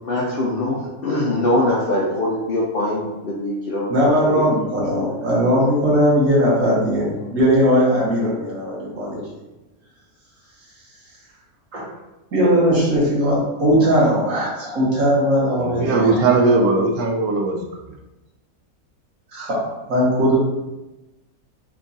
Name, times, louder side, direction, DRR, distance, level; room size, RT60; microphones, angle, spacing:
voice 1, 0.1-4.4 4.9-5.3, left 1 dB, 60° left, -5 dB, 0.6 m, -23 dB
voice 2, 3.9-9.2 11.7-11.8 12.3-16.6 19.3-20.4, equal, 65° right, -5 dB, 1.6 m, -19 dB
voice 3, 15.6-17.6, right 3 dB, 85° right, 2 dB, 1.1 m, -18 dB
3.6 x 2.3 x 3.9 m, 1.0 s
omnidirectional pair, 1.5 m